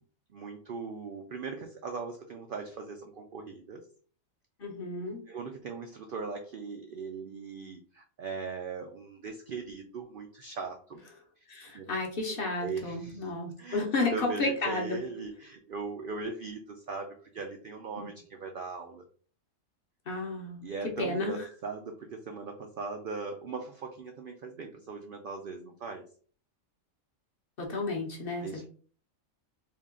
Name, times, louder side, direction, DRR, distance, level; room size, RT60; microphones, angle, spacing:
voice 1, 0.3-3.8 5.3-11.0 11.7-11.9 12.3-13.3 13.6-19.1 20.6-26.1 28.4-28.7, right 4 dB, 65° right, 4 dB, 0.5 m, -39 dB
voice 2, 4.6-5.2 11.5-15.0 18.0-18.1 20.1-20.7 21.0-21.5 27.6-28.5, left 2 dB, 50° left, 1 dB, 0.9 m, -32 dB
3.6 x 2.3 x 3.6 m, 0.43 s
omnidirectional pair, 1.4 m